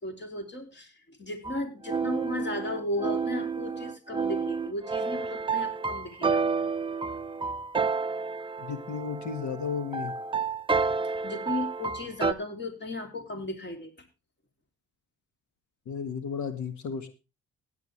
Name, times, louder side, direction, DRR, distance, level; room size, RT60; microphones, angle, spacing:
voice 1, 0.0-6.4 11.2-13.9, left 2 dB, 35° left, 6 dB, 3.4 m, -35 dB
sound 1, 1.4-12.3, right 5 dB, 15° right, 0.6 m, -30 dB
voice 2, 8.6-10.1 15.9-17.1, left 6 dB, 70° left, 10 dB, 1.7 m, -33 dB
16.5 x 9.5 x 3.3 m, 0.29 s
cardioid pair, 90°, 30 cm